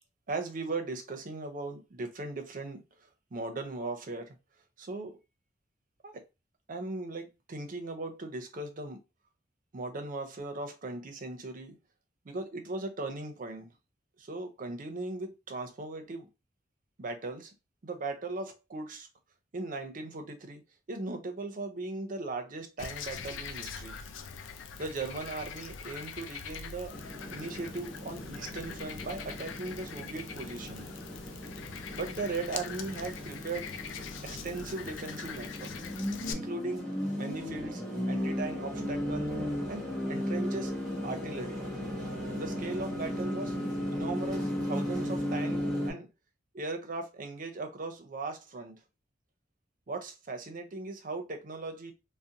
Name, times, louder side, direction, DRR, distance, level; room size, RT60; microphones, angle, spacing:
voice 1, 0.3-4.4 4.8-5.1 6.0-6.2 6.7-9.0 9.7-11.8 12.2-13.7 14.2-16.3 17.0-17.5 17.8-19.1 19.5-20.6 20.9-24.0 24.8-26.9 27.3-30.9 31.9-33.7 34.2-35.7 36.3-36.8 37.2-39.3 39.7-40.7 41.0-41.6 42.3-43.6 43.9-46.1 46.5-48.7 49.9-51.9, right 3 dB, 45° right, 0.5 m, -38 dB
Frog, 22.8-36.3, left 6 dB, 90° left, 0.4 m, -43 dB
sound 1, 26.9-45.9, equal, ahead, 0.8 m, -36 dB
2.5 x 2.0 x 2.7 m
head